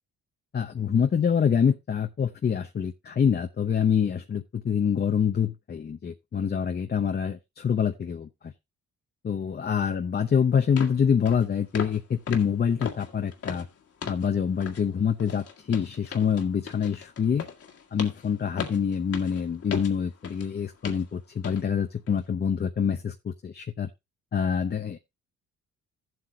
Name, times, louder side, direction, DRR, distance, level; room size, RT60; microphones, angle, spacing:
voice 1, 0.5-8.5 9.2-13.7 14.1-17.5 17.9-23.9 24.3-25.0, left 7 dB, 35° left, 0.7 m, -26 dB
sound 1, 10.1-10.2 10.8-11.0 11.3-11.5 11.7-12.0 12.3-14.3 14.6-14.9 15.2-20.5 20.8-21.1 21.4-21.6 22.1-22.2, left 6 dB, 50° left, 1.8 m, -37 dB
15.0 x 7.8 x 2.2 m
cardioid pair, 90°, 30 cm